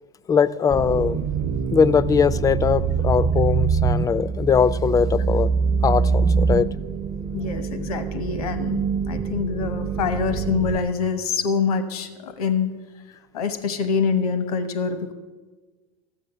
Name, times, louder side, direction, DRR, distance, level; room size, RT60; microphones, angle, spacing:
voice 1, 0.3-1.2 1.7-5.5 5.8-6.7, left 6 dB, 20° left, 0.4 m, -20 dB
sound 1, 0.7-10.8, right 5 dB, 30° right, 0.6 m, -24 dB
voice 2, 7.3-12.7 13.3-15.1, left 5 dB, 90° left, 1.0 m, -25 dB
13.5 x 7.7 x 6.7 m
supercardioid pair, 105°, 18 cm